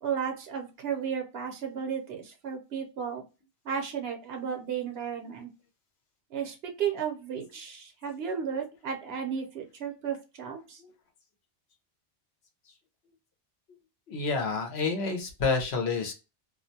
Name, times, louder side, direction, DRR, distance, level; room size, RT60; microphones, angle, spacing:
voice 1, 0.0-3.2 3.6-5.5 6.3-10.8, right 7 dB, 65° right, 4 dB, 0.9 m, -34 dB
voice 2, 14.1-16.1, left 4 dB, 70° left, 4 dB, 1.0 m, -29 dB
2.4 x 2.1 x 2.6 m, 0.29 s
omnidirectional pair, 1.2 m